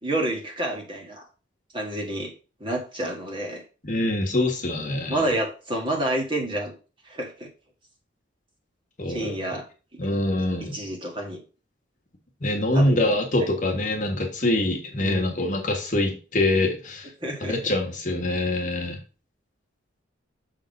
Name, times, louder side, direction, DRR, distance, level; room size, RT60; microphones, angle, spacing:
voice 1, 0.0-1.3 1.7-2.3 2.6-3.6 5.1-6.7 7.0-7.5 9.1-9.6 9.9-10.0 10.6-11.4 12.7-13.1 15.0-15.3 17.2-17.7, right 1 dB, 25° right, 1 dB, 1.7 m, -29 dB
voice 2, 3.8-5.2 9.0-9.6 10.0-10.8 12.4-17.1 17.4-19.0, left 1 dB, 40° left, 1 dB, 1.4 m, -24 dB
6.4 x 3.7 x 5.2 m, 0.34 s
head